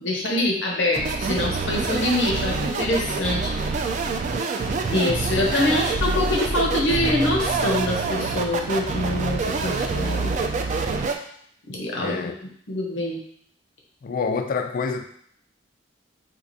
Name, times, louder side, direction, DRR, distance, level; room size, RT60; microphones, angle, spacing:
voice 1, 0.0-3.5 4.9-10.5 11.7-12.3 12.7-13.2, left 1 dB, 75° left, -1 dB, 0.8 m, -25 dB
sound 1, 0.9-11.2, right 3 dB, 40° right, 0.3 m, -26 dB
voice 2, 5.5-5.8 12.0-12.3 14.0-15.0, left 5 dB, 50° left, 6 dB, 0.3 m, -28 dB
4.5 x 2.4 x 2.6 m, 0.65 s
head